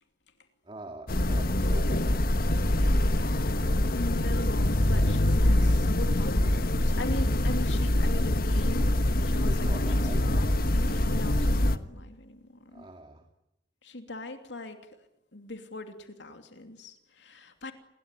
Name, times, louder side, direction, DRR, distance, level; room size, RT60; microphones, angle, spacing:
voice 1, 0.6-2.7 4.8-5.3 9.4-10.3 12.7-13.3, right 1 dB, 30° right, 5 dB, 2.4 m, -45 dB
sound 1, 1.1-11.8, left 1 dB, 55° left, 1.5 m, -24 dB
voice 2, 3.9-12.8 13.8-17.7, left 2 dB, 80° left, 7 dB, 2.9 m, -41 dB
28.5 x 21.0 x 9.4 m, 0.87 s
head